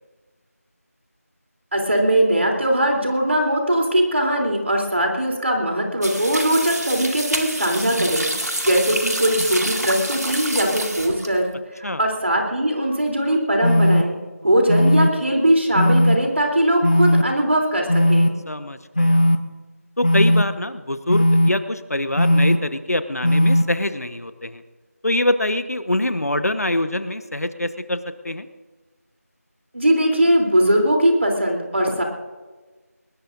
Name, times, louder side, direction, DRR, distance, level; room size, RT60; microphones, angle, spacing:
voice 1, 1.7-8.3 8.6-14.2 14.4-18.3 29.7-32.0, right 1 dB, 45° right, 1 dB, 3.5 m, -20 dB
sound 1, 6.0-11.5, right 1 dB, 80° right, 2.2 m, -27 dB
sound 2, 13.6-14.0 14.7-15.1 15.7-16.2 16.8-17.2 17.9-18.3 19.0-19.4 20.0-20.4 21.1-21.5 22.2-22.6 23.2-23.6, equal, 30° left, 0.8 m, -16 dB
voice 2, 18.5-19.4 20.0-24.6 25.0-28.5, left 1 dB, 70° left, 11 dB, 1.1 m, -24 dB
21.5 x 20.0 x 2.7 m, 1.3 s
figure-of-eight pair, 180°, 9 cm